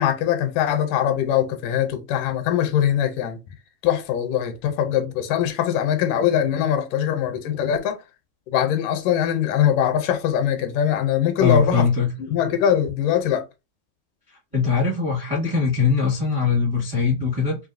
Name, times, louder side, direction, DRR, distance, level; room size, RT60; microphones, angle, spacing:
voice 1, 0.0-3.4 3.8-8.0 8.5-11.9 12.2-13.5, left 10 dB, 85° left, 2.2 m, -22 dB
voice 2, 11.4-12.1 14.5-17.6, left 5 dB, 35° right, 0.5 m, -21 dB
5.3 x 2.7 x 2.6 m
omnidirectional pair, 3.8 m